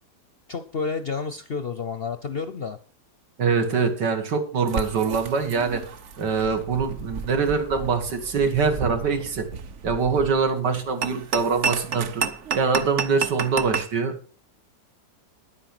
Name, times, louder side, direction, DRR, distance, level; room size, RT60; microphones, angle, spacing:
voice 1, 0.5-2.8, left 5 dB, 55° left, 10 dB, 0.7 m, -30 dB
voice 2, 3.4-5.8 6.2-9.5 9.8-12.2 12.5-14.1, right 5 dB, 90° right, 6 dB, 2.4 m, -24 dB
sound 1, 4.7-13.9, right 6 dB, 55° right, 1.0 m, -32 dB
10.0 x 9.0 x 6.0 m, 0.41 s
omnidirectional pair, 1.8 m